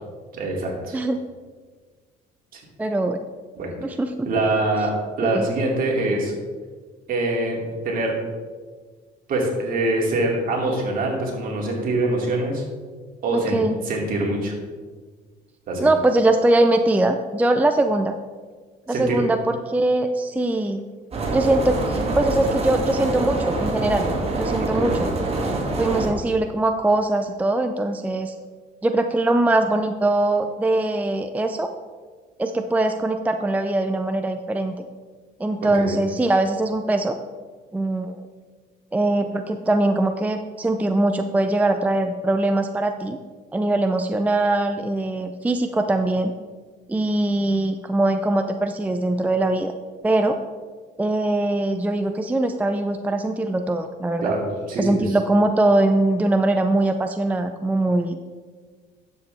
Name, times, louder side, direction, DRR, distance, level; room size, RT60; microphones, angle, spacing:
voice 1, 0.3-1.0 2.5-2.6 3.6-3.7 4.2-6.3 7.1-8.2 9.3-12.6 13.2-13.6 13.8-14.5 15.7-15.9 18.9-19.2 24.6-24.9 35.8-36.0 54.2-55.2, right 2 dB, 55° right, -1 dB, 2.5 m, -24 dB
voice 2, 0.9-1.2 2.8-3.2 3.8-4.3 5.3-5.4 13.3-13.7 15.8-18.2 18.9-20.8 21.3-24.1 24.4-25.1 25.8-28.3 28.8-31.7 32.4-34.7 35.4-37.2 37.7-38.2 38.9-43.2 43.5-46.3 46.9-49.7 50.0-50.4 51.0-54.3 54.8-58.2, right 2 dB, 10° right, 7 dB, 0.4 m, -22 dB
sound 1, 21.1-26.1, right 2 dB, 35° right, 1.6 m, -25 dB
10.5 x 7.4 x 3.4 m, 1.5 s
cardioid pair, 110°, 17 cm